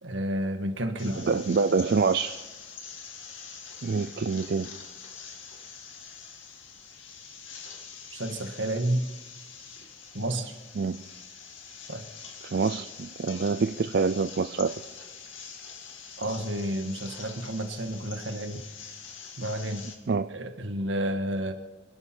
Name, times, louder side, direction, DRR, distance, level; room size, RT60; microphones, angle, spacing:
voice 1, 0.0-1.3 8.1-9.1 10.1-10.6 11.9-12.1 16.2-18.6 19.4-19.9 20.3-21.5, right 1 dB, 80° right, 1.6 m, -30 dB
sound 1, 1.0-20.0, left 6 dB, 90° left, 2.2 m, -45 dB
voice 2, 1.2-2.5 3.8-4.8 10.8-11.0 12.4-14.8 20.1-20.3, right 4 dB, 55° right, 0.4 m, -26 dB
25.0 x 12.0 x 4.5 m
head